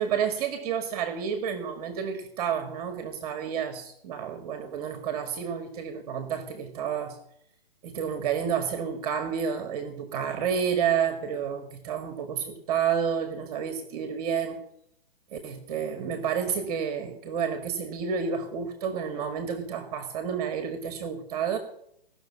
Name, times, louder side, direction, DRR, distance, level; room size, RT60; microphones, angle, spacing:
voice 1, 0.0-7.2 7.8-14.6 15.3-21.6, right 7 dB, 40° right, 7 dB, 1.9 m, -30 dB
17.5 x 6.6 x 8.4 m, 0.74 s
hypercardioid pair, 140°, 30 cm